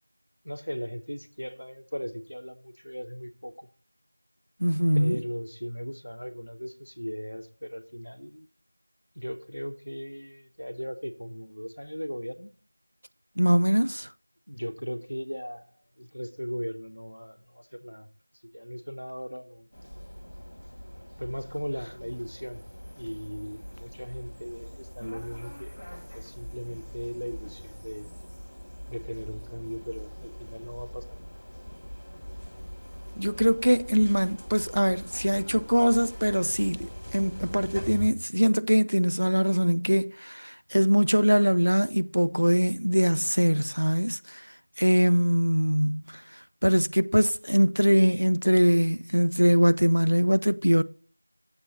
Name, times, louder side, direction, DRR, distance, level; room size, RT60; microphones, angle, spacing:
voice 1, 0.4-3.7 4.9-8.4 9.2-12.5 14.5-15.7 16.0-18.1 18.5-19.7 21.2-22.6 23.0-25.8 26.1-28.1 28.9-31.3, equal, 75° left, 0.8 m, -37 dB
voice 2, 4.6-5.2 13.4-14.1 33.2-44.4 44.8-46.2 46.6-50.8, equal, 60° right, 0.3 m, -23 dB
sound 1, 19.7-38.1, equal, 20° left, 1.1 m, -42 dB
7.0 x 6.8 x 4.1 m
figure-of-eight pair, 180°, 0 cm